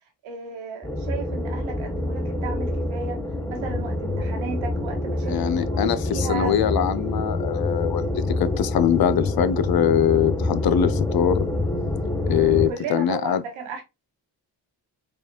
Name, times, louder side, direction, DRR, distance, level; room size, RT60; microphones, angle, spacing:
voice 1, 0.2-3.2 3.5-6.6 12.2-13.8, right 5 dB, 90° right, 1.3 m, -35 dB
sound 1, 0.8-12.7, left 2 dB, 5° left, 0.7 m, -26 dB
voice 2, 5.3-11.5 12.3-13.4, left 9 dB, 50° left, 0.6 m, -22 dB
4.8 x 2.4 x 2.8 m
supercardioid pair, 60°, 47 cm